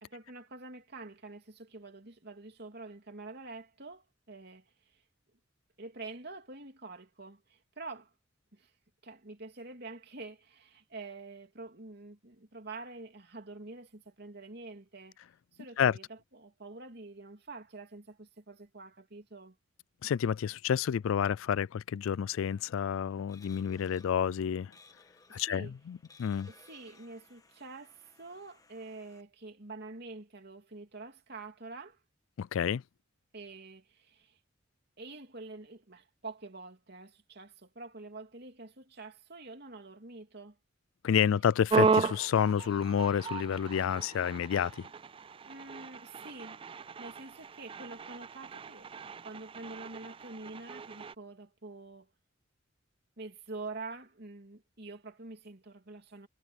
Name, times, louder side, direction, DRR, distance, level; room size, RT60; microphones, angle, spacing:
voice 1, 0.0-4.7 5.8-8.1 8.5-8.7 9.0-15.2 15.5-19.6 25.3-25.7 26.5-32.0 33.3-34.4 35.0-40.6 45.4-48.9 49.2-52.1 53.2-56.3, right 3 dB, 55° right, 3.1 m, -47 dB
voice 2, 20.0-24.7 25.3-26.5 32.4-32.8 41.0-44.9, left 8 dB, 85° left, 0.3 m, -29 dB
sound 1, 22.5-29.2, left 3 dB, 20° left, 1.3 m, -61 dB
sound 2, 41.7-51.2, right 5 dB, 25° right, 0.3 m, -34 dB
head